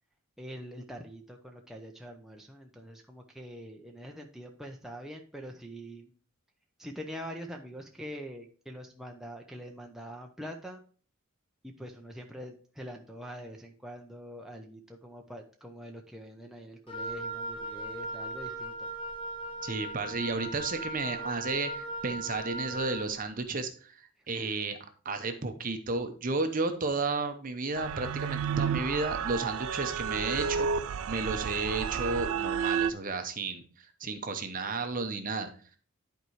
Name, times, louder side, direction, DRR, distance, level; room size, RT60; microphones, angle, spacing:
voice 1, 0.4-6.1 6.8-10.8 11.6-18.9 24.2-24.3, equal, ahead, 1 dB, 0.6 m, -44 dB
Wind instrument woodwind instrument, 16.9-23.1, right 1 dB, 25° left, 1.1 m, -38 dB
voice 2, 19.6-24.8 25.0-35.5, right 3 dB, 40° right, 7 dB, 0.7 m, -33 dB
sound 1, 27.8-32.9, right 7 dB, 70° right, 0.4 m, -31 dB
11.0 x 4.5 x 3.1 m, 0.41 s
head